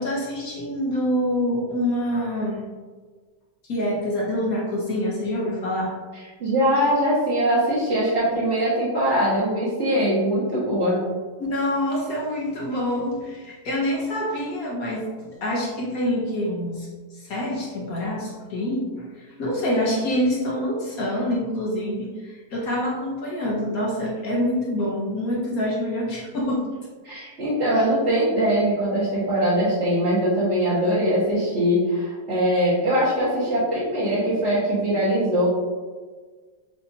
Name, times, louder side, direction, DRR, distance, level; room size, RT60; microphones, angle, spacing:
voice 1, 0.0-2.6 3.7-6.0 11.4-18.9 19.2-26.7, left 1 dB, 60° left, -4 dB, 1.0 m, -26 dB
voice 2, 6.1-11.0 27.0-35.5, equal, 40° right, -12 dB, 1.3 m, -22 dB
7.1 x 2.7 x 2.7 m, 1.4 s
omnidirectional pair, 2.1 m